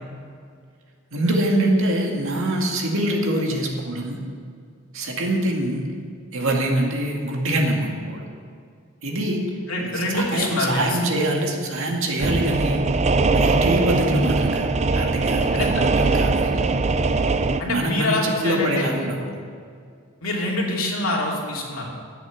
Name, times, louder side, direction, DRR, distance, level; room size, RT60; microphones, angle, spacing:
voice 1, 1.1-4.2 4.9-5.8 6.3-8.2 9.0-9.5 9.8-12.8 13.3-14.7 14.9-16.6 17.7-19.3, right 1 dB, 65° right, 0 dB, 2.1 m, -24 dB
voice 2, 9.7-11.0 15.5-15.7 17.6-18.9 20.2-21.9, left 2 dB, 70° left, -2 dB, 2.8 m, -25 dB
sound 1, 12.2-17.6, right 3 dB, 30° right, 0.5 m, -21 dB
10.5 x 8.2 x 8.1 m, 2.1 s
head